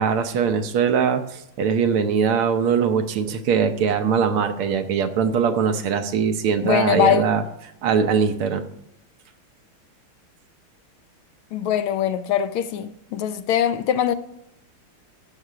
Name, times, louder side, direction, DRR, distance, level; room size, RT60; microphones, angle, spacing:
voice 1, 0.0-7.4 7.8-8.6, right 6 dB, 85° right, 1.8 m, -21 dB
voice 2, 6.6-7.3 11.5-14.1, left 9 dB, 80° left, 1.6 m, -22 dB
14.5 x 6.6 x 4.9 m
omnidirectional pair, 2.3 m